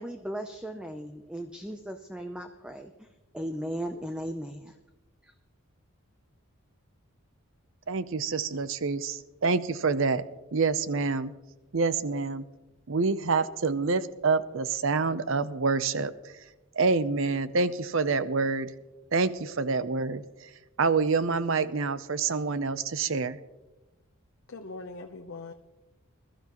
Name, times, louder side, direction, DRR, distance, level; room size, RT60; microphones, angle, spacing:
voice 1, 0.0-3.1 3.3-4.7 5.2-5.3, equal, 5° right, 6 dB, 0.5 m, -37 dB
voice 2, 7.9-10.2 10.5-11.3 11.7-12.4 12.9-16.1 16.8-18.7 19.1-20.2 20.8-23.4, right 4 dB, 65° right, 14 dB, 0.6 m, -27 dB
voice 3, 24.5-25.5, left 3 dB, 60° left, 3 dB, 0.8 m, -41 dB
21.0 x 12.5 x 3.0 m, 1.1 s
head